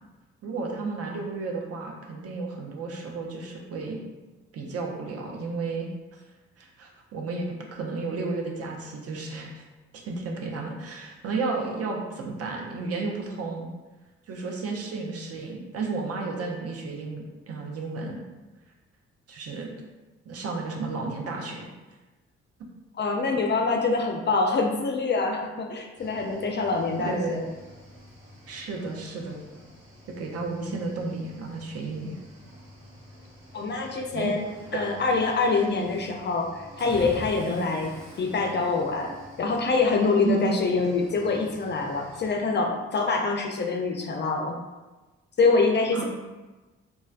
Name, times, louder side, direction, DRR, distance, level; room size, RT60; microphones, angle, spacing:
voice 1, 0.4-4.0 4.5-5.9 6.6-9.6 10.1-13.7 14.3-18.2 19.3-19.7 20.3-21.7 22.6-22.7 27.0-27.4 28.5-29.6 30.2-32.2 34.1-34.3 34.7-34.9 37.5-37.7 40.2-40.6 45.9-46.0, right 4 dB, 50° right, 0 dB, 0.6 m, -32 dB
voice 2, 23.0-27.4 33.5-34.5 34.7-37.9 38.2-44.6 45.4-46.0, left 4 dB, 35° left, 2 dB, 0.4 m, -25 dB
Cricket / Waves surf, 26.0-42.3, equal, 75° right, 1.0 m, -47 dB
3.0 x 2.3 x 2.4 m, 1.2 s
hypercardioid pair, 45°, 32 cm